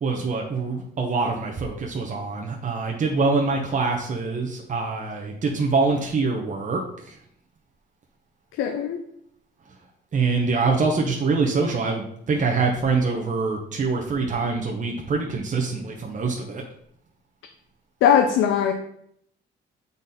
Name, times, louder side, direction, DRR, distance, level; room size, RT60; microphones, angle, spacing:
voice 1, 0.0-7.2 10.1-16.6, right 4 dB, 40° right, 0 dB, 1.0 m, -24 dB
voice 2, 8.6-9.0 18.0-18.7, left 8 dB, 85° left, 5 dB, 0.6 m, -19 dB
7.0 x 4.0 x 4.1 m, 0.71 s
cardioid pair, 90°, 20 cm